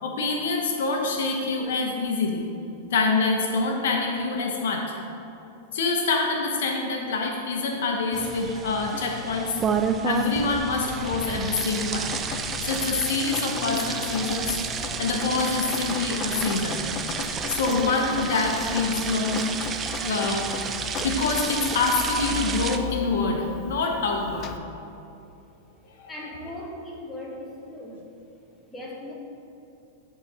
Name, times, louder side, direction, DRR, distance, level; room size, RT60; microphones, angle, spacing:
voice 1, 0.0-2.5 2.9-4.9 5.7-9.5 10.0-12.1 12.6-14.5 14.8-16.8 17.5-19.5 20.0-20.5 21.0-24.5 26.0-26.1, left 3 dB, 75° left, 2 dB, 1.0 m, -26 dB
sound 1, 8.1-22.8, right 5 dB, 25° right, 0.4 m, -31 dB
Drip, 11.6-24.6, left 7 dB, 35° left, 0.4 m, -38 dB
voice 2, 26.1-28.0 28.7-29.1, left 1 dB, 10° left, -3 dB, 1.3 m, -38 dB
10.0 x 4.0 x 4.2 m, 2.8 s
hypercardioid pair, 125°, 0 cm